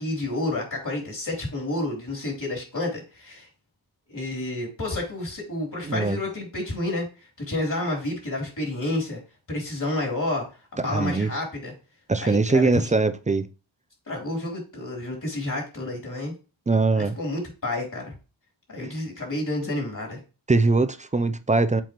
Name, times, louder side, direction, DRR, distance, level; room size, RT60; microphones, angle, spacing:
voice 1, 0.0-3.5 4.1-7.1 7.4-9.2 9.5-10.4 10.7-11.7 12.2-12.7 14.1-16.3 16.9-18.1 18.7-20.2, left 2 dB, 40° left, 3.3 m, -30 dB
voice 2, 5.8-6.2 10.8-11.3 12.1-13.5 16.7-17.2 20.5-21.8, right 3 dB, 15° right, 0.4 m, -22 dB
7.2 x 4.4 x 3.0 m
wide cardioid pair, 95°, 46 cm